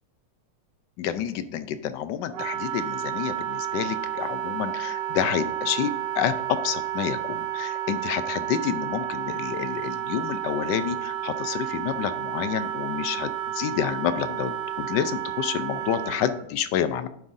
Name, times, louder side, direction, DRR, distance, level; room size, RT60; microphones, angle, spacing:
voice 1, 1.0-17.1, left 9 dB, 85° left, 11 dB, 1.2 m, -29 dB
Wind instrument woodwind instrument, 2.3-16.4, right 12 dB, 90° right, 1.3 m, -31 dB
11.0 x 5.4 x 2.6 m, 0.72 s
omnidirectional pair, 1.9 m